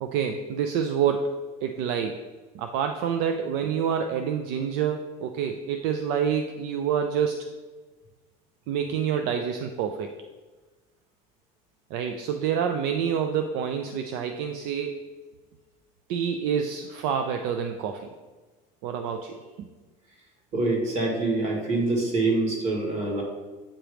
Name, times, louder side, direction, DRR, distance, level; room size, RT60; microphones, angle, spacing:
voice 1, 0.0-2.2 2.5-7.5 8.7-10.1 11.9-15.0 16.1-18.1 18.8-19.7, right 7 dB, 70° right, 6 dB, 0.5 m, -27 dB
voice 2, 20.5-23.2, right 2 dB, 40° right, 0 dB, 2.0 m, -25 dB
8.6 x 3.0 x 5.0 m, 1.3 s
cardioid pair, 140°, 17 cm